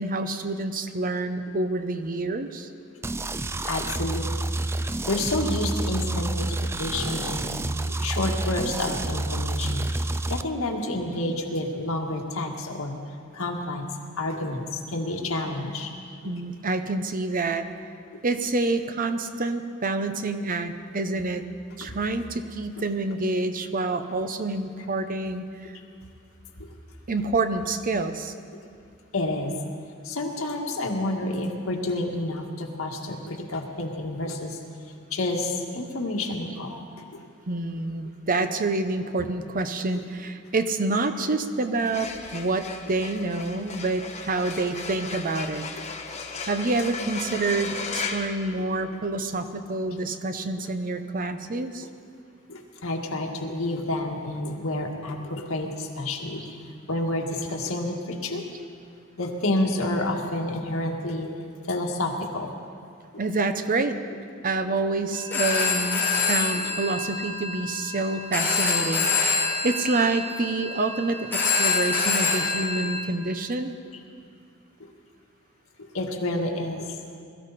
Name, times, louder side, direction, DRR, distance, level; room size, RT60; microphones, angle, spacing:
voice 1, 0.0-2.7 16.2-17.7 18.2-21.4 21.8-25.8 27.1-28.3 37.5-45.6 46.5-51.9 63.2-64.0 64.4-73.7, right 3 dB, 40° right, 9 dB, 0.8 m, -27 dB
sound 1, 3.0-10.4, right 2 dB, 10° right, 0.3 m, -29 dB
voice 2, 3.7-4.3 5.1-7.6 8.0-9.9 10.3-13.0 13.3-13.8 14.2-15.9 29.1-29.5 30.1-34.6 35.1-36.8 52.5-56.4 56.9-58.4 59.2-61.3 61.7-62.5 75.9-76.9, left 2 dB, 90° left, 1 dB, 1.8 m, -29 dB
sound 2, 41.7-49.2, left 4 dB, 35° left, 1.2 m, -36 dB
Telephone, 65.1-73.0, left 4 dB, 10° left, 3.6 m, -26 dB
21.5 x 14.0 x 4.2 m, 2.3 s
head